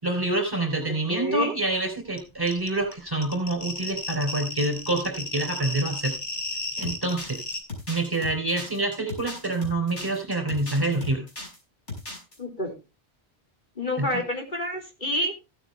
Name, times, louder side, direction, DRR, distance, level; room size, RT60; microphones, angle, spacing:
voice 1, 0.0-6.1 6.8-7.4 7.9-11.3 14.0-14.2, right 2 dB, 20° right, 4 dB, 3.9 m, -27 dB
voice 2, 1.1-1.5 12.4-12.8 13.8-15.3, left 1 dB, 45° left, 1 dB, 3.5 m, -28 dB
sound 1, 2.2-2.3 2.5-7.6, left 2 dB, 20° left, 2.6 m, -33 dB
sound 2, 6.8-11.6 11.9-12.4, left 3 dB, 80° left, 5.7 m, -37 dB
16.0 x 9.0 x 3.4 m, 0.26 s
omnidirectional pair, 1.2 m